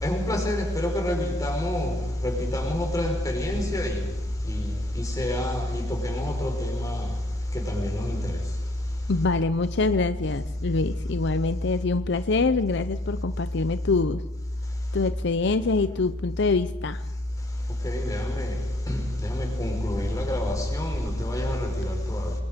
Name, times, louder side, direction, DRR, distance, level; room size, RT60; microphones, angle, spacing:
voice 1, 0.0-4.0 4.4-7.1 7.5-8.4 17.8-18.6 18.9-22.3, left 1 dB, 20° left, 5.0 m, -27 dB
voice 2, 9.1-14.2 14.9-17.0, left 3 dB, 60° left, 0.6 m, -25 dB
28.5 x 22.0 x 5.2 m
head